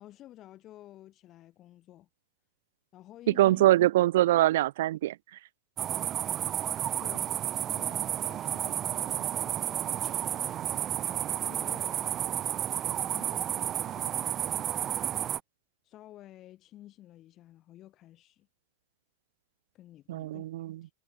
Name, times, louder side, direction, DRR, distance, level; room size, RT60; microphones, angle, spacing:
voice 1, 0.0-2.1 2.9-3.7 7.0-10.9 11.4-12.6 12.9-15.2 15.8-18.5 19.7-20.4 20.8-20.9, left 14 dB, 25° left, 5.1 m, -52 dB
voice 2, 3.3-5.1 20.1-20.8, right 15 dB, 60° right, 1.5 m, -23 dB
sound 1, 5.8-15.4, right 11 dB, 20° right, 1.8 m, -31 dB
supercardioid pair, 175°, 0 cm